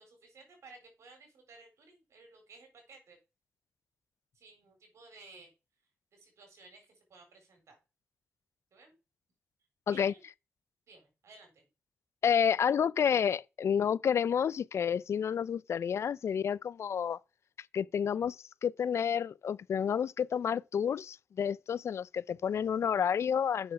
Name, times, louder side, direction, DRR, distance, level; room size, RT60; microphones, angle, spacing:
voice 1, 0.0-3.2 4.3-5.5 6.1-7.8 8.7-9.0 9.9-10.2 10.9-11.6, right 3 dB, 80° right, 4.1 m, -56 dB
voice 2, 12.2-17.2 17.7-18.4 18.6-23.7, left 8 dB, 70° left, 0.4 m, -30 dB
7.6 x 6.3 x 4.8 m
cardioid pair, 70°, 5 cm